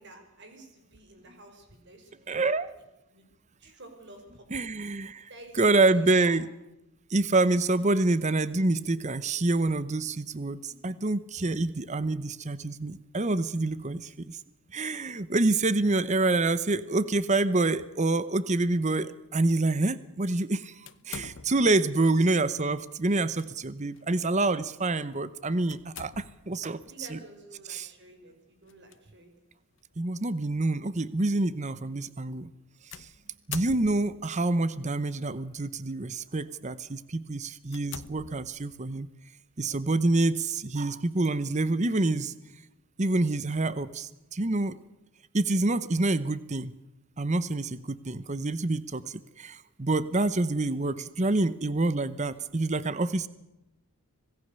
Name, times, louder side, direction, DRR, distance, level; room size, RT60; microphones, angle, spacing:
voice 1, 0.0-2.4 3.1-3.2 3.6-4.5 5.3-6.4 26.9-29.4, right 2 dB, 55° right, 5 dB, 5.4 m, -50 dB
voice 2, 2.3-2.7 4.5-5.3 5.6-6.4 7.1-14.4 14.7-20.7 21.1-26.8 27.1-27.2 27.7-27.9 30.0-32.5 33.0-33.1 33.5-39.1 39.6-42.3 43.0-44.8 45.3-46.7 47.2-53.3, right 2 dB, 30° right, 16 dB, 0.8 m, -27 dB
sound 1, 20.9-21.8 23.1-23.5 23.9-24.1 25.7-26.6 28.7-29.0 29.8-29.9 32.9-34.3 35.2-35.7 36.2-36.4 37.0-37.1 37.7-38.9, left 7 dB, 60° left, 0.9 m, -44 dB
26.0 x 18.0 x 6.9 m, 0.93 s
head